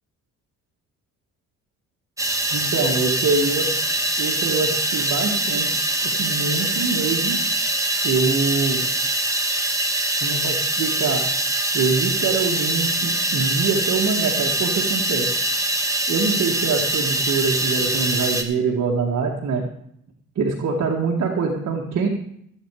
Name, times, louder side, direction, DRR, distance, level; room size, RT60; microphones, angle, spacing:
sound 1, 2.2-18.4, right 1 dB, 10° right, 1.6 m, -23 dB
voice 1, 2.5-3.7 4.2-5.8 6.0-7.4 8.0-8.9 10.2-11.2 11.7-15.3 16.1-19.6 20.4-22.1, right 4 dB, 65° right, -1 dB, 2.1 m, -24 dB
15.5 x 8.3 x 5.0 m, 0.69 s
cardioid pair, 90°, 30 cm